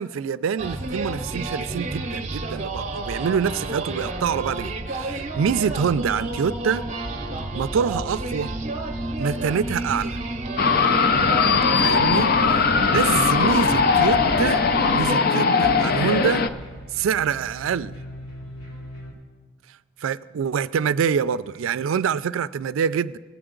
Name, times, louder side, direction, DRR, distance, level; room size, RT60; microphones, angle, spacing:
voice 1, 0.0-6.8 7.5-8.5 9.2-10.2 11.8-12.3 12.9-14.6 14.9-16.5 16.9-17.9 20.0-23.2, right 7 dB, 80° right, 17 dB, 0.3 m, -25 dB
sound 1, 0.6-15.2, right 2 dB, 35° right, 0.6 m, -30 dB
sound 2, 10.6-16.5, left 5 dB, 50° left, 0.4 m, -19 dB
sound 3, 11.3-19.1, equal, 80° left, 2.8 m, -40 dB
17.5 x 7.9 x 3.8 m, 1.4 s
head